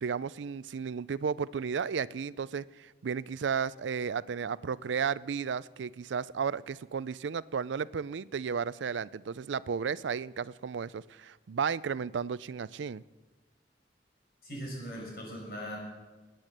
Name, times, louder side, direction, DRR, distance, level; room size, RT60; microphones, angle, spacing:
voice 1, 0.0-13.0, right 6 dB, 90° right, 0.4 m, -33 dB
voice 2, 14.4-15.8, equal, 55° left, 6.2 m, -39 dB
21.0 x 9.3 x 6.6 m
head